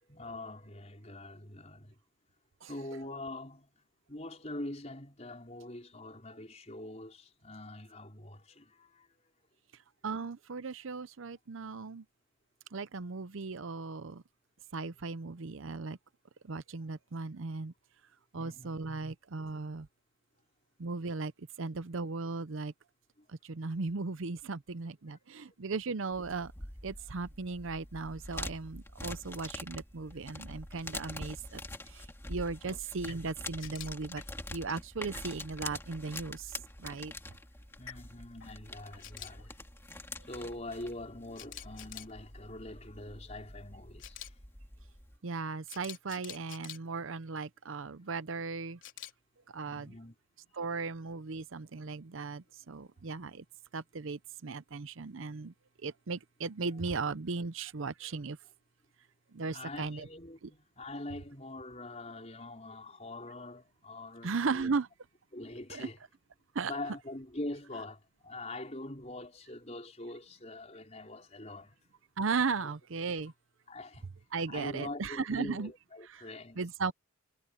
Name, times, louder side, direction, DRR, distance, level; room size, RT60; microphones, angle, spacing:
voice 1, 0.0-2.0 2.7-9.2 18.3-18.8 23.2-23.3 25.4-25.5 30.0-30.5 32.6-32.8 37.6-39.5 40.2-44.4 49.7-50.2 58.0-58.2 59.5-64.8 65.3-66.0 66.6-71.9 72.6-72.7 73.7-74.1 74.5-76.7, left 2 dB, 30° left, 4.8 m, -44 dB
voice 2, 10.0-12.0 12.7-14.2 14.7-16.0 16.4-17.7 18.3-19.9 20.8-22.7 23.4-26.5 26.8-31.6 31.9-34.2 34.5-36.5 36.8-37.1 45.2-48.8 49.5-49.9 50.5-53.4 53.7-55.5 55.8-58.4 59.3-60.0 64.2-64.9 65.7-65.9 66.5-66.7 72.2-73.3 74.3-75.7 76.6-76.9, right 4 dB, 65° right, 0.7 m, -37 dB
sound 1, 26.1-45.2, left 2 dB, 10° left, 2.3 m, -45 dB
sound 2, 33.1-35.7 36.7-40.1, left 9 dB, 75° left, 3.8 m, -55 dB
Camera, 33.6-33.9 39.0-39.3 41.4-42.1 44.0-44.3 45.7-46.8 48.8-49.1, left 12 dB, 60° left, 4.4 m, -45 dB
head